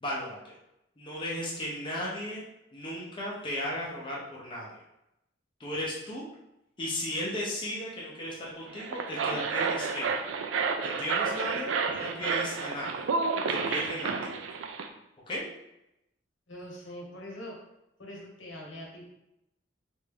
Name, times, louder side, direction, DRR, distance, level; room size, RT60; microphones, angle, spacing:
voice 1, 0.0-0.6 1.0-2.4 2.7-4.7 5.6-6.3 6.8-10.1 10.8-13.1 13.5-14.3 15.3-15.4, left 1 dB, 25° left, -5 dB, 0.6 m, -35 dB
sound 1, 8.7-14.9, right 5 dB, 85° right, 0.4 m, -30 dB
voice 2, 16.5-17.6 18.0-19.1, equal, 85° left, -2 dB, 1.1 m, -43 dB
3.3 x 2.6 x 3.4 m, 0.86 s
head